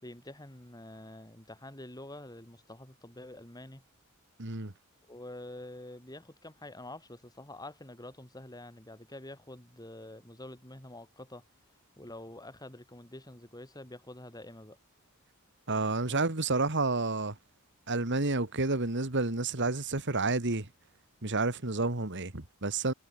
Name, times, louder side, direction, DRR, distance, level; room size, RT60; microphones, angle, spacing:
voice 1, 0.0-3.8 5.1-11.4 12.0-14.8, left 1 dB, 20° left, 4.4 m, -47 dB
voice 2, 4.4-4.7 15.7-17.3 17.9-20.7 21.2-22.9, right 3 dB, 55° right, 2.2 m, -30 dB
head